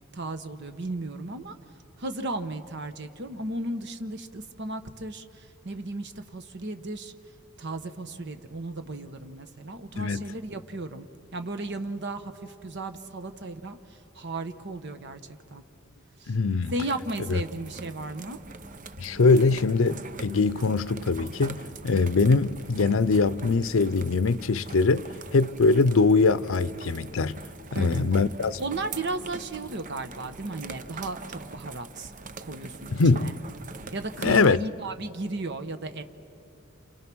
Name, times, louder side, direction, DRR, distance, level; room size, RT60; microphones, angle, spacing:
voice 1, 0.1-1.5 2.0-7.1 7.6-11.1 11.3-15.2 15.5-15.6 16.2-16.3 16.7-18.4 27.7-28.1 28.6-32.1 32.4-33.3 33.9-36.0, right 2 dB, 60° right, 1.1 m, -35 dB
voice 2, 10.0-10.3 16.3-16.7 17.3-17.4 19.0-25.1 25.3-27.4 27.7-28.6 32.9-33.3 34.2-34.6, left 4 dB, 85° left, 0.6 m, -22 dB
sound 1, 16.6-34.5, right 4 dB, 40° right, 0.7 m, -43 dB
29.0 x 28.5 x 6.2 m
head